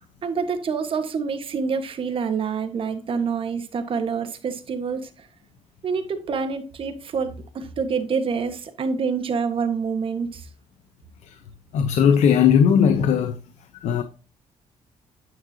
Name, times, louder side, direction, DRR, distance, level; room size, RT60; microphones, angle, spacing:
voice 1, 0.2-5.3 5.8-10.5, right 5 dB, 50° right, 1.4 m, -27 dB
voice 2, 11.7-13.4 13.8-14.0, left 7 dB, 90° left, 0.8 m, -18 dB
9.1 x 9.1 x 2.8 m
cardioid pair, 125°, 12 cm